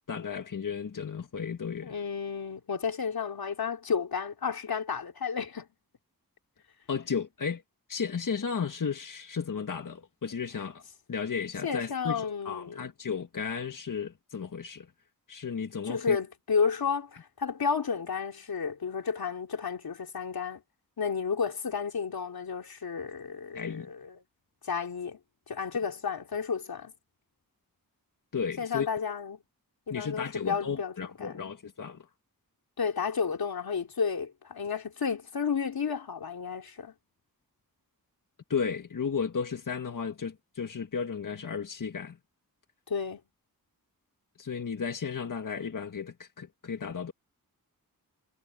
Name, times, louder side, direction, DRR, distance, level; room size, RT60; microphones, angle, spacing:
voice 1, 0.1-1.9 6.9-7.6 7.9-10.8 11.1-14.9 15.3-16.2 23.5-23.9 28.3-28.9 29.9-32.0 38.5-42.2 44.4-47.1, left 6 dB, 60° left, 1.7 m, -34 dB
voice 2, 1.8-5.7 11.6-12.9 15.8-20.6 21.0-24.2 24.6-25.2 25.5-26.9 28.6-29.4 29.9-30.9 31.2-31.5 32.8-36.9 42.9-43.2, left 6 dB, 90° left, 3.1 m, -32 dB
wide cardioid pair, 80°, 35 cm